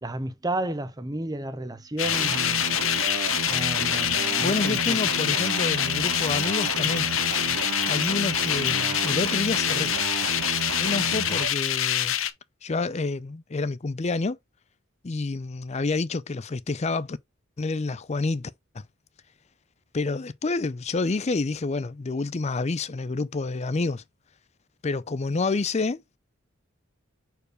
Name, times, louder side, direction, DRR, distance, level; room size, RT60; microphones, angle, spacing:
voice 1, 0.0-2.7 3.5-5.0, right 1 dB, 20° right, 0.7 m, -32 dB
sound 1, 2.0-12.3, left 11 dB, 70° left, 0.8 m, -25 dB
sound 2, 2.0-11.5, right 5 dB, 75° right, 0.5 m, -33 dB
voice 2, 4.4-7.1 7.9-9.9 10.8-12.1 12.6-14.4 15.0-17.2 17.6-18.8 19.9-24.0 24.8-26.2, left 3 dB, 30° left, 0.5 m, -28 dB
6.6 x 4.6 x 3.3 m
head